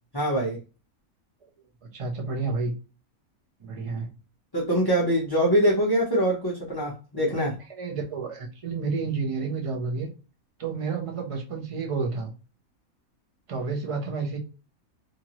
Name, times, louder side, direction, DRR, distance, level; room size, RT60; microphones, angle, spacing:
voice 1, 0.1-0.6 4.5-7.5, equal, 25° left, -5 dB, 0.6 m, -23 dB
voice 2, 1.9-2.7 3.6-4.1 7.7-10.1 10.6-12.3 13.5-14.4, right 4 dB, 50° right, 2 dB, 0.4 m, -30 dB
2.8 x 2.5 x 2.9 m, 0.33 s
omnidirectional pair, 1.5 m